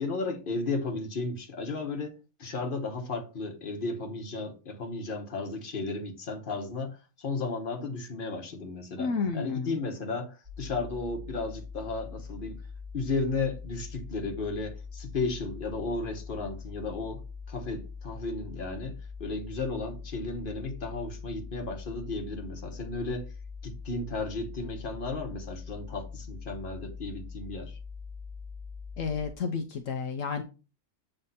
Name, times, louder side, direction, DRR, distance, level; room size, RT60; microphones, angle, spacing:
voice 1, 0.0-12.6 12.9-23.3 23.6-27.8, left 3 dB, 40° left, 1.3 m, -34 dB
voice 2, 9.0-9.7 29.0-30.4, left 5 dB, 70° left, 1.0 m, -31 dB
sound 1, 10.4-29.3, left 5 dB, 30° right, 3.4 m, -42 dB
7.7 x 3.4 x 4.1 m
omnidirectional pair, 1.4 m